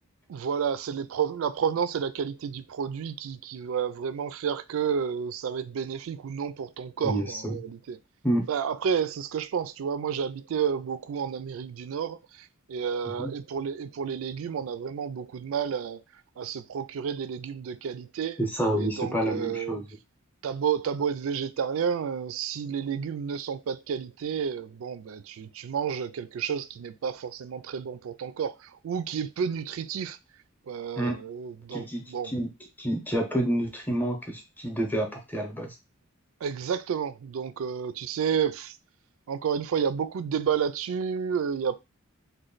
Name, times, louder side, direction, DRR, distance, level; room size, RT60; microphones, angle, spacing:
voice 1, 0.3-8.0 8.5-16.0 16.4-18.4 18.8-19.8 20.4-30.2 30.7-32.3 36.4-38.8 39.3-41.8, right 7 dB, 70° right, 0.3 m, -31 dB
voice 2, 7.0-7.6 8.2-8.5 13.2-13.3 18.4-19.8 31.0-31.2 31.7-32.5 32.8-35.7, right 1 dB, 10° left, 0.7 m, -28 dB
3.1 x 2.2 x 3.9 m
head